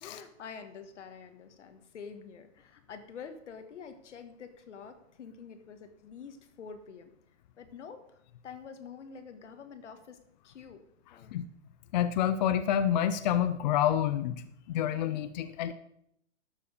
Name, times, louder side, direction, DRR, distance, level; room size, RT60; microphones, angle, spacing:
voice 1, 0.0-7.1 7.6-10.8 11.1-11.3, left 6 dB, 85° left, 8 dB, 1.7 m, -47 dB
voice 2, 11.9-14.4 14.7-15.7, left 10 dB, 40° left, 11 dB, 0.5 m, -28 dB
12.0 x 7.2 x 5.1 m, 0.73 s
hypercardioid pair, 160°, 35 cm